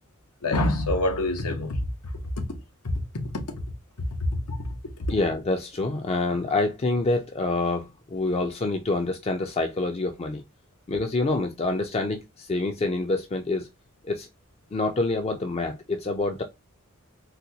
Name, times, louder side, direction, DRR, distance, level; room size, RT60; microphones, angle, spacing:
voice 1, 0.4-1.9 2.4-2.5 2.8-3.6 4.2-5.1, left 1 dB, 90° left, 0.9 m, -27 dB
voice 2, 5.1-10.4 10.9-13.7 14.0-14.3 14.7-16.4, left 2 dB, 30° left, 0.4 m, -26 dB
4.1 x 2.2 x 2.7 m
head